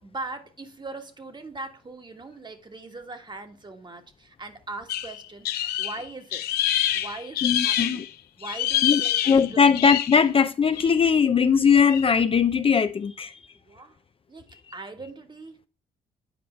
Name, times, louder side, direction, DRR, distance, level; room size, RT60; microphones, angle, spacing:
voice 1, 0.0-6.5 6.9-8.0 8.4-9.7 13.7-14.0 14.3-15.7, right 3 dB, 30° right, 1.4 m, -40 dB
sound 1, 4.9-8.1 8.4-10.3 10.7-11.1 11.8-12.1, left 12 dB, 85° left, 0.7 m, -26 dB
voice 2, 7.4-8.0 8.8-9.0 9.3-13.4, left 6 dB, 35° left, 0.5 m, -20 dB
8.7 x 4.8 x 4.3 m
cardioid pair, 75°, 16 cm